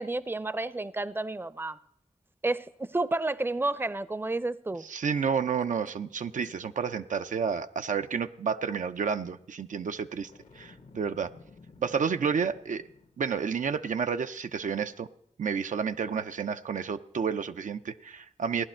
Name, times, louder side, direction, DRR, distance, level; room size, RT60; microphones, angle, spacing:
voice 1, 0.0-1.8 2.4-4.9, right 2 dB, 15° right, 0.5 m, -31 dB
voice 2, 4.8-11.3 11.8-12.9 13.2-15.1 15.4-18.7, right 6 dB, 85° right, 0.5 m, -30 dB
Boom, 10.2-13.4, left 4 dB, 80° left, 1.1 m, -54 dB
17.0 x 11.0 x 4.4 m
cardioid pair, 50°, 13 cm